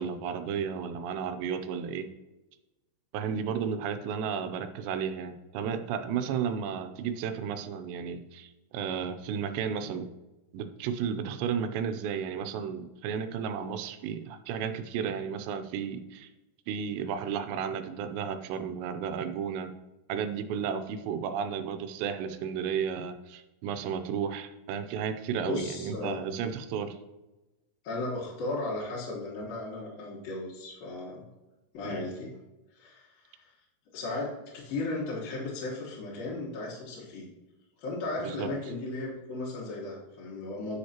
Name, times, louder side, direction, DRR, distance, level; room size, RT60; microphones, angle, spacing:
voice 1, 0.0-2.1 3.1-10.1 10.5-16.3 16.7-19.7 20.1-27.0 31.8-32.0 38.2-38.5, right 7 dB, 85° right, 8 dB, 2.8 m, -33 dB
voice 2, 25.4-26.4 27.8-31.3 31.7-32.3 32.7-33.5 33.9-37.3 37.8-40.8, left 2 dB, 65° left, -6 dB, 2.9 m, -36 dB
10.0 x 6.4 x 2.9 m, 1.0 s
omnidirectional pair, 4.9 m